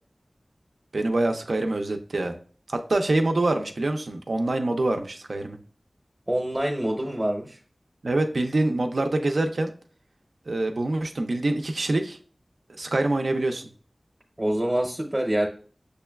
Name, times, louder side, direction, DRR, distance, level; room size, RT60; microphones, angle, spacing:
voice 1, 0.9-2.4 2.7-5.6 8.0-9.7 10.5-12.2 12.7-13.7, right 2 dB, 80° right, 5 dB, 0.4 m, -25 dB
voice 2, 6.3-7.6 14.4-15.5, right 1 dB, 30° right, 1 dB, 0.7 m, -25 dB
6.5 x 2.2 x 2.2 m, 0.42 s
wide cardioid pair, 45°, 0 cm